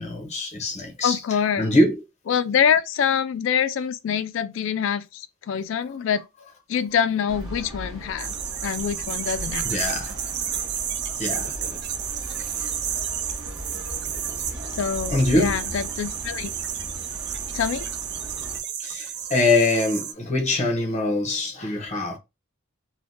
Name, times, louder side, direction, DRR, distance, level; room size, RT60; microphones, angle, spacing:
voice 1, 0.0-2.0 9.6-10.1 11.1-11.7 15.1-15.6 18.8-22.2, left 2 dB, 35° left, 0.8 m, -23 dB
voice 2, 1.0-1.7 2.3-6.2 6.7-8.3 8.6-9.7 14.7-16.5 17.5-17.8, left 7 dB, 65° left, 0.3 m, -25 dB
sound 1, 7.3-18.6, equal, 15° right, 0.9 m, -38 dB
sound 2, 8.2-20.1, right 9 dB, 55° right, 0.4 m, -31 dB
3.3 x 2.2 x 2.5 m
head